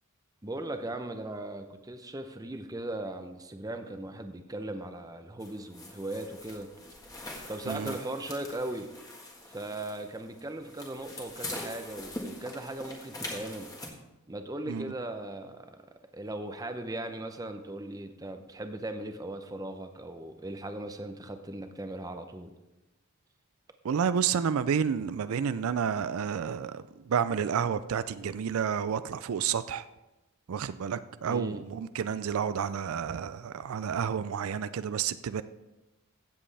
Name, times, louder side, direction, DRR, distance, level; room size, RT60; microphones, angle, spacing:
voice 1, 0.4-6.7 7.5-8.9 9.5-13.7 14.3-15.8 16.1-22.5 31.3-31.6, right 1 dB, 15° right, 7 dB, 0.6 m, -38 dB
sound 1, 5.4-13.9, left 1 dB, 15° left, 1.6 m, -43 dB
voice 2, 7.7-8.0 14.7-14.9 23.8-29.9 30.5-35.4, right 7 dB, 75° right, 14 dB, 0.4 m, -30 dB
15.5 x 7.7 x 3.4 m, 1.0 s
head